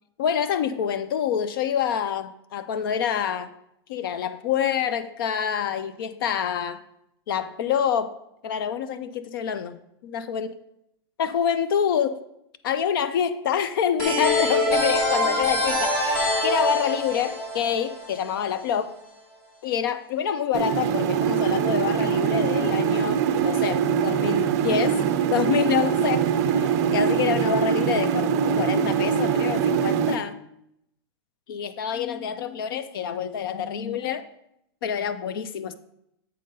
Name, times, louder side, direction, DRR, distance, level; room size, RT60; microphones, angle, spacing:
voice 1, 0.2-3.5 3.9-6.8 7.3-8.2 8.4-10.5 11.2-12.2 12.6-18.9 19.6-25.0 25.3-30.4 31.5-34.3 34.8-35.7, left 8 dB, 55° left, 0.5 m, -27 dB
sound 1, 14.0-18.6, left 1 dB, 20° left, 1.9 m, -24 dB
sound 2, 20.5-30.1, right 7 dB, 40° right, 0.5 m, -23 dB
7.7 x 5.3 x 3.8 m
supercardioid pair, 175°, 14 cm